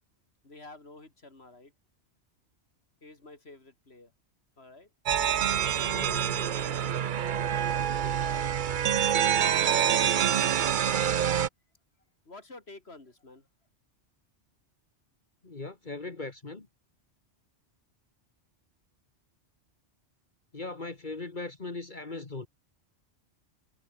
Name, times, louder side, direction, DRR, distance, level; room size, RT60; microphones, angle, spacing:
voice 1, 0.4-1.7 3.0-4.1 4.6-4.9 5.6-11.4 12.3-13.5, left 2 dB, 65° left, 3.8 m, -51 dB
sound 1, 5.1-11.5, right 9 dB, 50° right, 0.7 m, -26 dB
voice 2, 5.8-6.3 15.4-16.7 20.5-22.5, left 3 dB, 45° left, 2.0 m, -39 dB
omnidirectional pair, 1.2 m